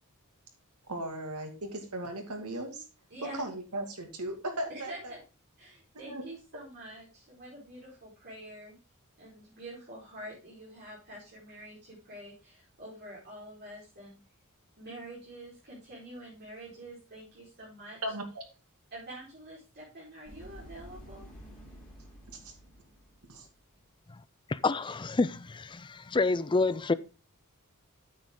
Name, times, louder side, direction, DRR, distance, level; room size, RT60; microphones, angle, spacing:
voice 1, 0.9-2.8 3.3-5.1 5.9-6.2 18.0-18.4 22.3-22.5 23.3-23.5, right 1 dB, 85° right, 2.3 m, -37 dB
voice 2, 3.1-3.4 4.7-5.2 5.6-8.7 9.2-14.2 14.8-18.0 18.9-21.2, right 1 dB, 50° right, 4.5 m, -46 dB
sound 1, 20.3-23.7, equal, 5° left, 4.6 m, -50 dB
voice 3, 24.5-26.9, left 3 dB, 20° left, 0.4 m, -28 dB
8.9 x 7.4 x 3.7 m
head